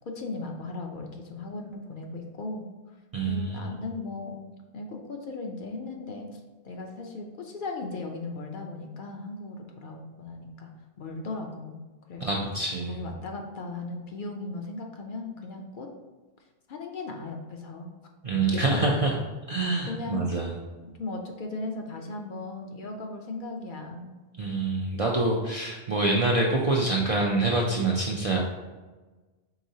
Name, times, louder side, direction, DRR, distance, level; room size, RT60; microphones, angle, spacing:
voice 1, 0.1-2.7 3.3-4.4 4.7-6.4 6.6-10.7 11.0-11.8 12.1-12.4 12.9-15.9 16.7-17.9 18.5-18.9 19.9-20.2 20.8-24.1, left 3 dB, 60° left, 2 dB, 0.7 m, -37 dB
voice 2, 3.1-3.7 12.2-13.0 18.2-19.1 19.5-20.5 24.4-28.4, right 2 dB, 55° right, -2 dB, 0.4 m, -26 dB
4.8 x 3.7 x 2.7 m, 1.3 s
omnidirectional pair, 1.1 m